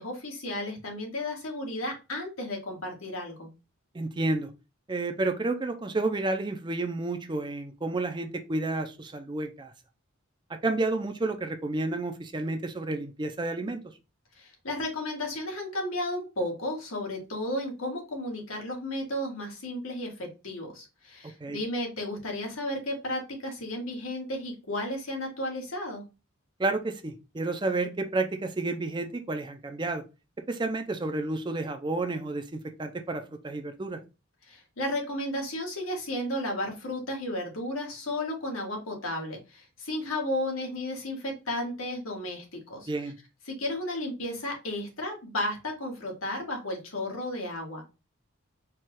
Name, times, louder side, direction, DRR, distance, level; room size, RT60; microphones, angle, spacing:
voice 1, 0.0-3.5 14.4-26.0 34.5-42.9 43.5-47.9, left 1 dB, 80° left, 1 dB, 1.7 m, -33 dB
voice 2, 3.9-4.5 4.9-9.7 10.5-13.8 21.4-21.6 26.6-30.0 30.5-34.0 42.9-43.2, right 2 dB, 20° right, 7 dB, 0.5 m, -30 dB
4.5 x 2.3 x 4.5 m, 0.28 s
head